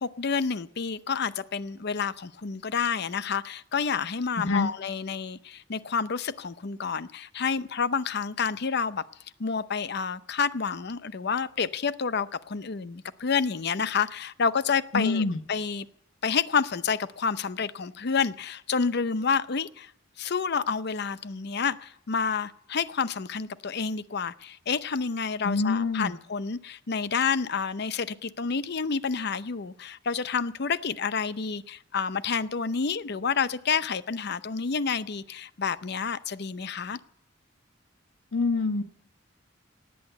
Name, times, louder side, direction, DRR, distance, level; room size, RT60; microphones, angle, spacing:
voice 1, 0.0-9.0 9.4-15.9 16.2-19.9 20.2-37.0, left 5 dB, 60° left, 0.7 m, -29 dB
voice 2, 4.4-4.7 14.9-15.4 25.4-26.1 38.3-38.8, left 3 dB, 85° left, 1.2 m, -25 dB
18.5 x 8.7 x 8.0 m
head